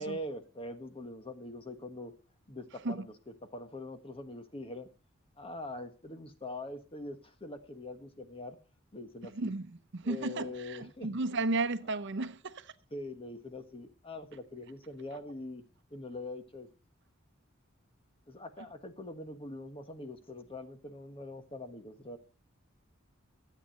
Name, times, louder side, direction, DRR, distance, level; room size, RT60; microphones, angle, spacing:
voice 1, 0.0-2.1 2.5-3.1 3.4-4.9 5.4-8.6 8.9-9.5 10.0-11.1 12.9-15.6 15.9-16.7 18.3-22.2, left 1 dB, 25° left, 1.4 m, -43 dB
voice 2, 9.3-9.7 9.9-12.7, right 3 dB, 60° right, 0.8 m, -33 dB
13.5 x 8.5 x 5.5 m
head